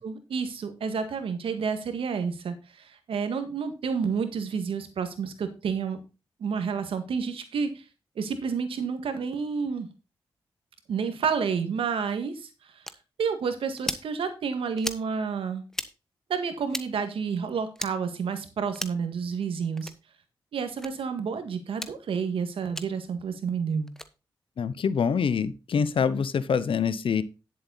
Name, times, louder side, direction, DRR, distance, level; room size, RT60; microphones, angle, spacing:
voice 1, 0.0-6.0 6.4-7.8 8.1-9.9 10.9-12.5 13.2-15.6 16.3-19.9 20.5-23.9, right 6 dB, 85° right, 8 dB, 1.8 m, -30 dB
sound 1, 12.8-13.0 13.8-14.1 14.8-15.0 15.7-15.9 16.7-16.9 17.7-17.9 18.7-19.0 19.8-20.0 20.8-20.9 21.7-21.9 22.7-22.9 23.9-24.1, equal, 5° left, 1.2 m, -34 dB
voice 2, 24.6-27.2, left 6 dB, 75° left, 15 dB, 0.9 m, -25 dB
11.0 x 7.6 x 4.1 m, 0.30 s
cardioid pair, 50°, 9 cm